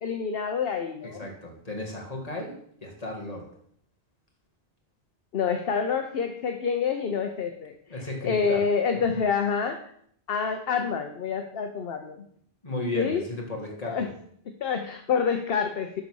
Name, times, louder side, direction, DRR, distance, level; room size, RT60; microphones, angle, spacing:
voice 1, 0.0-1.2 5.3-7.7 8.2-9.8 10.3-12.3 12.9-13.2 13.8-14.1 14.6-16.0, left 6 dB, 60° left, 6 dB, 0.9 m, -27 dB
voice 2, 1.0-2.5 2.8-3.5 7.9-8.6 12.6-14.1, left 1 dB, 35° left, 0 dB, 2.2 m, -34 dB
11.5 x 4.1 x 6.2 m, 0.66 s
omnidirectional pair, 1.1 m